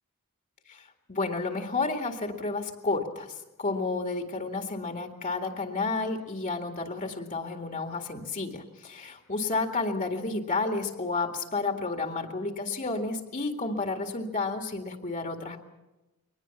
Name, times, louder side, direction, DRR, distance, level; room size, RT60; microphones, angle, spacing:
voice 1, 0.7-15.6, left 3 dB, 35° left, 4 dB, 2.0 m, -31 dB
23.0 x 19.5 x 7.2 m, 1.0 s
head